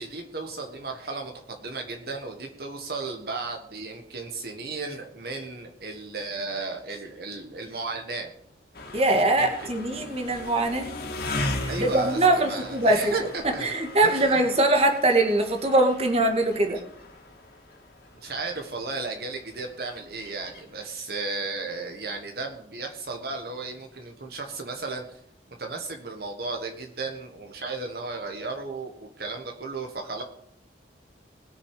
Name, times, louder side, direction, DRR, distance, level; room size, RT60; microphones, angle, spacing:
voice 1, 0.0-8.3 9.4-9.7 11.7-13.6 14.0-14.4 18.2-25.2 25.6-30.2, right 3 dB, 55° right, 3 dB, 1.5 m, -34 dB
sound 1, 8.7-20.7, left 1 dB, 55° left, 2.3 m, -38 dB
voice 2, 8.9-10.9 11.6-13.1 13.4-16.8, right 2 dB, 35° right, 4 dB, 1.8 m, -22 dB
20.5 x 6.9 x 4.9 m, 0.72 s
head